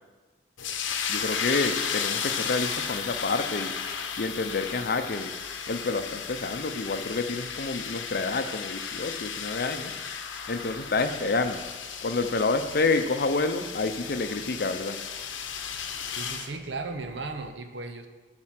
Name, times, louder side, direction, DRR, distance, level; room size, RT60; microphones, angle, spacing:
sound 1, 0.6-16.5, left 7 dB, 85° left, 0.8 m, -34 dB
voice 1, 1.1-3.7 4.2-5.3 5.7-9.9 10.5-11.6 12.0-15.0, left 3 dB, 55° left, 8 dB, 0.6 m, -28 dB
voice 2, 16.1-18.1, right 3 dB, 70° right, 6 dB, 0.8 m, -36 dB
11.0 x 4.4 x 5.9 m, 1.3 s
head